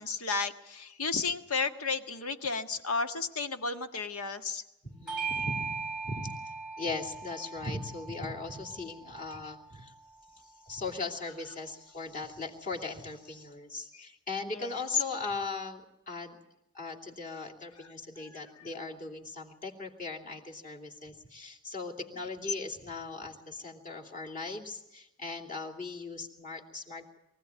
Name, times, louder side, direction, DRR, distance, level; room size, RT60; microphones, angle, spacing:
voice 1, 0.0-4.6 13.9-14.1 14.5-14.8, left 4 dB, 90° left, 7 dB, 1.6 m, -33 dB
voice 2, 4.8-6.4 6.8-9.9 10.3-16.4 16.7-27.2, left 3 dB, 35° left, 0 dB, 2.8 m, -39 dB
Bell / Doorbell, 5.1-9.9, right 5 dB, 5° right, 1.4 m, -39 dB
23.5 x 16.0 x 9.5 m, 0.87 s
head